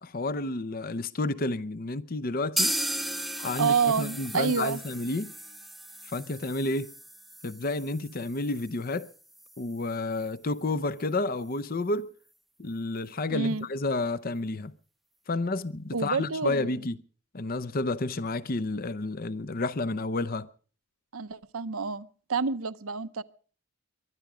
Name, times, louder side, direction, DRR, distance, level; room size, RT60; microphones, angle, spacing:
voice 1, 0.0-2.7 3.4-5.3 6.1-6.9 7.4-9.1 9.6-12.1 12.6-14.7 15.3-17.0 17.3-20.5, left 2 dB, 40° left, 0.6 m, -30 dB
sound 1, 2.6-10.3 10.6-10.7 11.0-11.1 11.5-11.6, right 1 dB, ahead, 0.6 m, -36 dB
voice 2, 3.4-4.8 13.3-13.7 15.9-16.8 21.1-23.2, right 5 dB, 80° right, 0.8 m, -28 dB
23.0 x 10.5 x 4.9 m
head